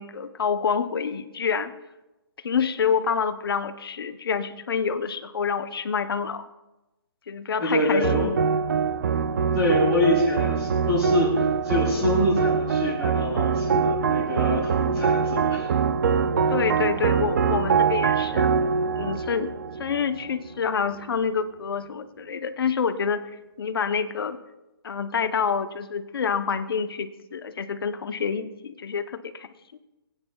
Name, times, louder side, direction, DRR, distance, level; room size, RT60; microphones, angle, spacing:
voice 1, 0.0-1.7 2.4-6.5 7.3-8.3 16.5-18.5 18.9-19.5 19.8-23.2 23.6-24.4 24.8-29.8, left 6 dB, 65° left, 9 dB, 0.8 m, -27 dB
voice 2, 7.6-8.3 9.5-15.7, left 1 dB, 15° right, -10 dB, 3.9 m, -25 dB
sound 1, 8.0-20.5, right 6 dB, 45° right, 0.4 m, -24 dB
24.5 x 9.0 x 2.3 m, 1.0 s
hypercardioid pair, 170°, 13 cm